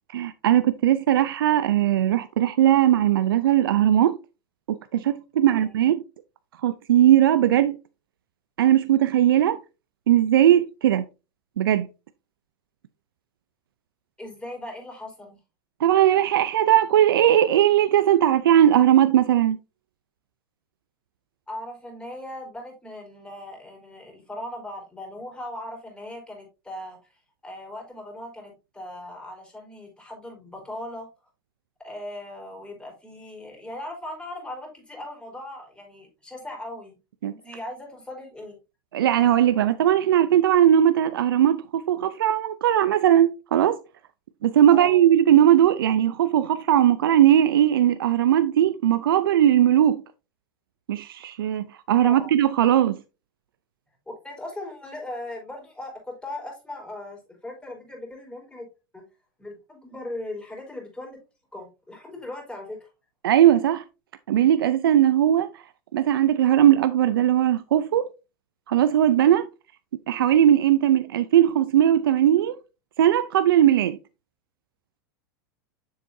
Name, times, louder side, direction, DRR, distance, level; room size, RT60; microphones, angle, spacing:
voice 1, 0.1-4.2 4.7-6.0 6.6-7.8 8.6-9.6 10.1-11.0 11.6-11.9 15.8-19.6 37.2-37.3 38.9-43.8 44.4-50.0 50.9-53.0 63.2-63.8 64.3-65.6 65.9-68.1 68.7-69.5 70.1-72.6 73.0-74.0, right 11 dB, 85° right, 0.5 m, -19 dB
voice 2, 14.2-15.4 21.5-31.1 31.8-37.0 37.2-38.6 44.7-45.0 52.0-52.3 54.1-58.7 58.9-59.0 59.4-61.2 61.5-62.9, left 1 dB, 10° left, 4.2 m, -38 dB
7.2 x 7.1 x 2.6 m
hypercardioid pair, 105°, 12 cm